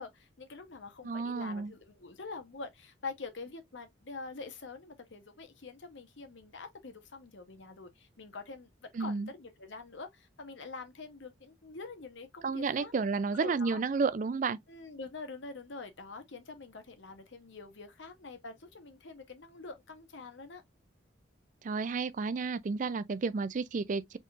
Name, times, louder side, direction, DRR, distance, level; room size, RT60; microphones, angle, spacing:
voice 1, 0.0-12.9 13.3-13.8 14.7-20.6, left 4 dB, 75° left, 0.9 m, -45 dB
voice 2, 1.0-1.7 8.9-9.3 12.4-14.6 21.6-24.2, right 4 dB, 45° right, 0.4 m, -31 dB
4.1 x 3.7 x 2.4 m
head